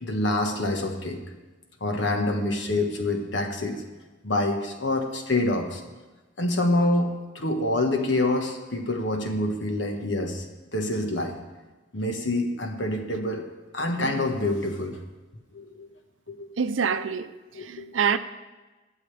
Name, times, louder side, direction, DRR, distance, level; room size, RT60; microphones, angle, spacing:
voice 1, 0.0-1.2 1.8-3.8 4.2-5.8 6.4-10.4 10.7-11.4 11.9-13.5 13.7-15.0 15.5-15.9 16.3-16.5 17.5-17.9, left 1 dB, 70° left, 1.4 m, -26 dB
voice 2, 16.6-18.2, right 6 dB, 90° right, 0.6 m, -26 dB
21.0 x 7.3 x 3.4 m
head